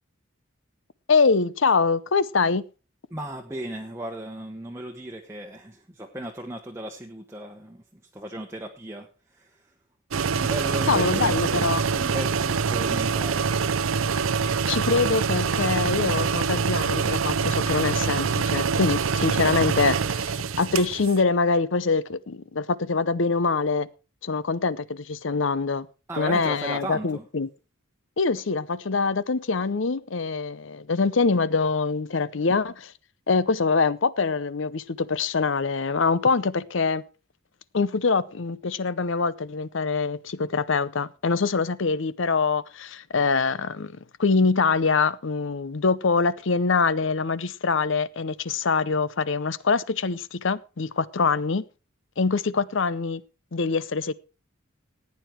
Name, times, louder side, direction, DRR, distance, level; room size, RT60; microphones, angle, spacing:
voice 1, 1.1-2.6 10.9-11.8 14.7-23.9 24.2-25.9 26.2-27.5 28.2-32.9 33.3-37.0 37.7-51.6 52.2-53.2 53.5-54.1, left 4 dB, 65° left, 0.7 m, -24 dB
voice 2, 3.1-7.8 8.1-9.7 10.3-13.5 26.1-27.2, right 1 dB, 10° right, 1.0 m, -36 dB
sound 1, 10.1-21.2, right 5 dB, 75° right, 0.6 m, -25 dB
15.0 x 9.3 x 4.5 m
head